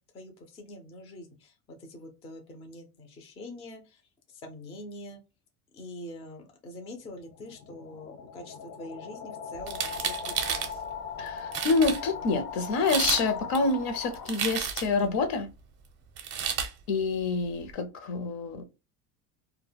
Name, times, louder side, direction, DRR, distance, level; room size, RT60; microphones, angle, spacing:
voice 1, 0.0-4.0 4.3-5.2 5.7-10.8, left 1 dB, 15° left, 0.3 m, -45 dB
sound 1, 7.0-14.8, left 6 dB, 80° left, 1.1 m, -40 dB
sound 2, 9.6-10.7 11.3-11.4 11.5-12.0 12.7-13.3 13.5-15.0 16.2-16.7, right 7 dB, 35° right, 0.6 m, -31 dB
voice 2, 11.2-15.5 16.9-18.6, left 4 dB, 55° left, 0.6 m, -27 dB
2.2 x 2.0 x 3.2 m
cardioid pair, 135°, 42 cm